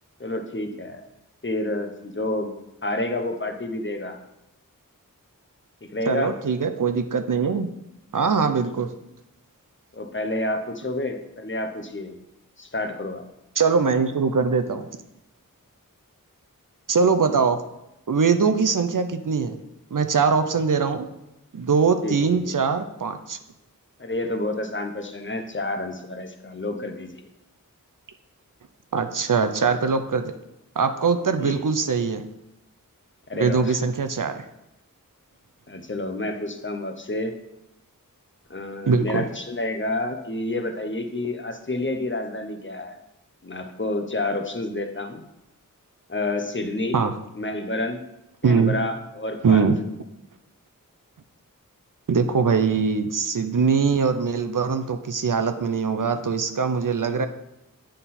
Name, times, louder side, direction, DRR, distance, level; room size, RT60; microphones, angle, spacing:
voice 1, 0.2-1.0 1.4-2.5 2.8-4.2 5.8-6.3 9.9-12.2 12.6-13.2 22.0-22.5 24.0-27.2 31.4-31.6 33.3-33.8 35.7-37.3 38.5-43.0 43.4-45.2 46.1-47.0 47.3-48.0 48.4-49.6, left 2 dB, 35° left, 6 dB, 0.7 m, -29 dB
voice 2, 6.1-7.7 8.1-8.9 13.6-14.9 16.9-17.6 18.1-19.6 19.9-21.1 21.5-23.4 28.9-30.3 30.8-32.2 33.4-34.5 38.9-39.2 46.9-47.1 48.4-48.7 49.4-49.8 52.1-57.3, right 5 dB, 65° right, 8 dB, 0.6 m, -22 dB
8.9 x 3.8 x 4.2 m, 0.90 s
wide cardioid pair, 45°, 34 cm